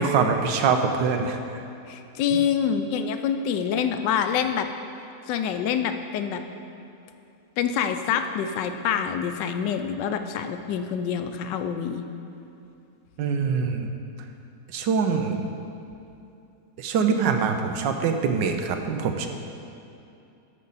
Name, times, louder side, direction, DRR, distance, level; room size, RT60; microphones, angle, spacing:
voice 1, 0.0-1.6 2.3-2.4 13.2-13.9 14.7-15.4 16.8-19.3, right 5 dB, 90° right, 5 dB, 1.4 m, -24 dB
voice 2, 1.9-4.7 5.3-6.4 7.6-12.0, left 7 dB, 85° left, 8 dB, 1.2 m, -26 dB
13.0 x 5.5 x 4.0 m, 2.7 s
omnidirectional pair, 1.9 m